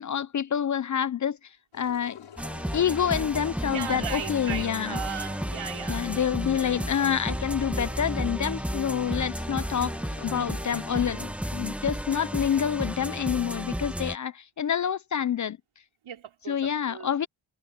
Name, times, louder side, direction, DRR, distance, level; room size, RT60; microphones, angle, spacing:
voice 1, 0.0-1.4 1.7-2.3 2.7-5.0 5.9-15.6 16.5-17.3, left 8 dB, 40° left, 0.5 m, -27 dB
Engine, 1.7-11.1, left 8 dB, 80° left, 6.9 m, -48 dB
sound 1, 2.4-14.2, equal, 5° right, 1.6 m, -33 dB
voice 2, 3.7-6.3 16.0-17.1, right 8 dB, 80° right, 5.2 m, -37 dB
cardioid pair, 105°, 47 cm